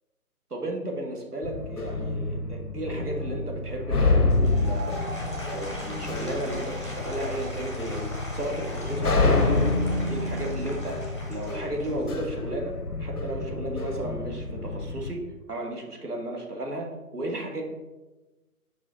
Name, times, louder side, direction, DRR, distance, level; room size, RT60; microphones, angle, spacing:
voice 1, 0.5-4.9 5.5-11.0 11.3-15.2 15.5-17.6, right 1 dB, 85° right, 1 dB, 1.5 m, -34 dB
sound 1, 1.4-15.1, left 3 dB, 90° left, 0.8 m, -28 dB
Applause / Crowd, 4.2-12.4, equal, 20° left, 0.6 m, -40 dB
5.3 x 4.8 x 4.0 m, 1.1 s
figure-of-eight pair, 145°, 45 cm